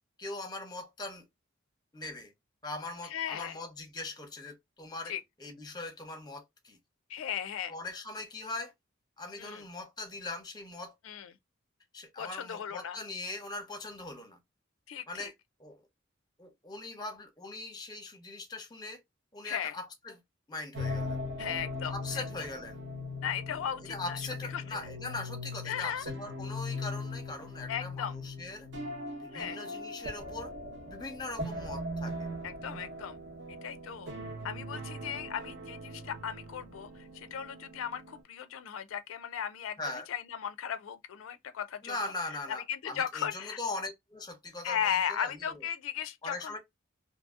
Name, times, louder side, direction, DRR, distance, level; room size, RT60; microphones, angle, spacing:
voice 1, 0.2-1.3 1.9-2.3 2.6-5.1 5.4-6.8 7.7-8.7 9.2-10.9 11.9-14.4 15.1-15.3 15.6-15.9 16.4-19.0 19.3-20.2 20.5-21.2 21.8-22.8 23.9-28.7 29.2-30.5 30.9-32.3 39.8-40.1 41.8-45.6 46.2-46.6, left 2 dB, 20° left, 0.7 m, -41 dB
voice 2, 3.0-3.6 5.1-5.2 7.1-7.7 9.4-9.6 11.0-11.3 12.2-13.0 14.9-15.3 19.4-19.7 21.4-22.2 23.2-24.2 24.5-24.6 25.7-26.0 27.7-28.2 29.3-29.6 32.4-33.2 33.6-34.1 34.4-42.0 42.5-43.6 44.6-46.6, left 8 dB, 85° left, 0.3 m, -36 dB
sound 1, 20.7-38.2, left 2 dB, 60° right, 1.0 m, -40 dB
2.7 x 2.6 x 2.3 m
head